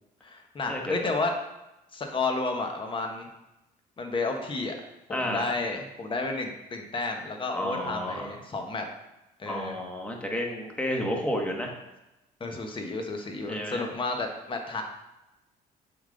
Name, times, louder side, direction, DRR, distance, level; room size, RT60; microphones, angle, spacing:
voice 1, 0.2-1.3 1.9-3.3 4.0-4.7 5.1-8.8 9.4-9.8 12.4-14.8, left 3 dB, 30° left, 3 dB, 1.0 m, -31 dB
voice 2, 5.1-5.4 7.5-8.3 9.5-11.7 13.5-13.9, equal, 5° left, 0 dB, 1.2 m, -31 dB
7.0 x 3.8 x 3.8 m, 0.94 s
cardioid pair, 110°, 17 cm